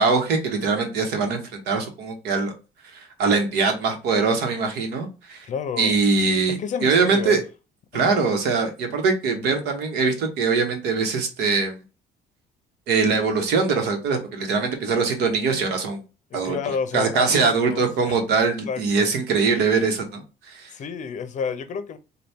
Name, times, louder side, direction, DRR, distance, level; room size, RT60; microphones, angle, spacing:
voice 1, 0.0-2.5 2.9-5.4 5.8-7.4 7.9-11.8 12.9-16.0 16.3-16.6 16.9-20.7, right 4 dB, 80° right, 1.0 m, -22 dB
voice 2, 5.4-6.0 6.6-7.4 7.9-8.2 16.3-18.2 18.6-19.1 20.7-22.0, left 6 dB, 45° left, 0.6 m, -30 dB
4.1 x 2.3 x 3.4 m
cardioid pair, 110°, 17 cm